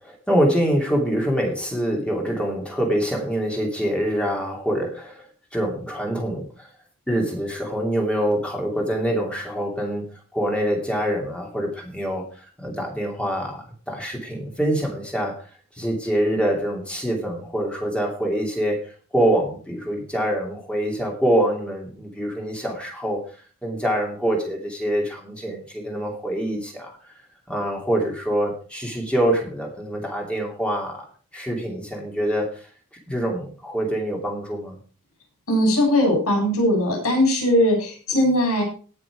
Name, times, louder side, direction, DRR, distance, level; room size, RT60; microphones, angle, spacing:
voice 1, 0.0-5.3 5.5-6.7 7.1-15.4 15.7-23.2 23.6-27.1 27.5-32.7 33.1-34.8, right 1 dB, 5° left, 0 dB, 2.7 m, -25 dB
voice 2, 35.5-38.6, left 1 dB, 75° left, 1 dB, 7.1 m, -19 dB
18.5 x 6.1 x 4.9 m, 0.39 s
head